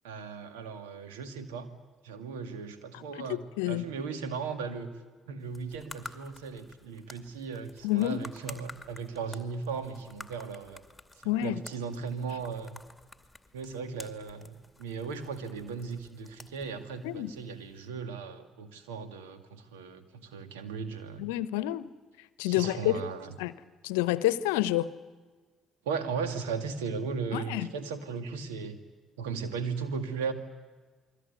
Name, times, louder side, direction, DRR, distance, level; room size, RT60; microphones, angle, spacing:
voice 1, 0.0-1.7 2.0-3.4 3.7-4.9 5.3-10.8 11.2-12.8 13.5-21.3 22.5-23.3 25.9-28.8 29.2-30.3, right 5 dB, 80° right, 8 dB, 2.1 m, -37 dB
voice 2, 2.9-3.8 7.8-8.2 11.2-11.6 17.0-17.3 21.2-21.9 22.4-22.9 23.4-23.5 23.8-24.9 27.3-27.7, left 15 dB, 75° left, 17 dB, 0.8 m, -29 dB
sound 1, 5.4-17.9, left 2 dB, 10° left, 2.4 m, -51 dB
28.5 x 21.5 x 8.3 m, 1.4 s
hypercardioid pair, 50°, 0 cm